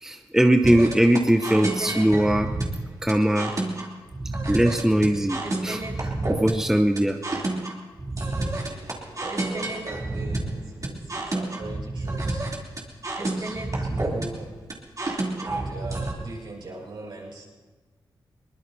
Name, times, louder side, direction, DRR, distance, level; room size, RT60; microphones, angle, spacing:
voice 1, 0.0-2.5 3.0-3.5 4.5-5.8 6.3-7.2, right 1 dB, 5° right, 5 dB, 0.9 m, -20 dB
sound 1, 0.6-16.1, right 2 dB, 40° right, 3.3 m, -29 dB
voice 2, 9.2-12.4 13.2-14.5 15.4-17.4, right 2 dB, 65° right, -5 dB, 6.8 m, -40 dB
22.5 x 20.5 x 2.8 m, 1.4 s
cardioid pair, 50°, 9 cm